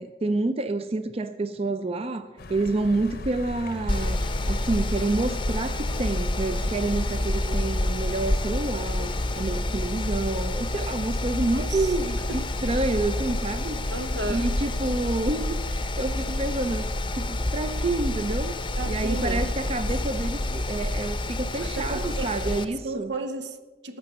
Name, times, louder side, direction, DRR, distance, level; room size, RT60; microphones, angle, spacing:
voice 1, 0.0-14.0 14.3-23.2, right 2 dB, 35° right, 0.5 m, -29 dB
Accelerating revving vroom, 2.4-9.3, left 1 dB, 60° left, 0.9 m, -39 dB
Mechanical fan, 3.9-22.6, left 1 dB, 30° left, 0.7 m, -28 dB
voice 2, 7.3-7.6 11.5-11.9 12.3-12.4 13.9-14.5 18.8-19.5 21.6-22.3 22.7-24.0, right 3 dB, 80° right, 0.9 m, -34 dB
11.5 x 7.1 x 8.8 m
head